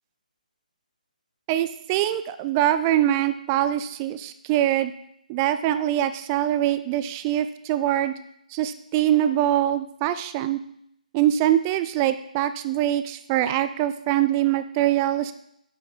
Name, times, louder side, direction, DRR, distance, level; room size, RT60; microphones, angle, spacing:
voice 1, 1.5-4.9 5.3-8.1 8.5-10.6 11.1-15.3, right 12 dB, 20° right, 11 dB, 0.3 m, -23 dB
8.5 x 7.0 x 3.7 m, 0.73 s
hypercardioid pair, 155°, 5 cm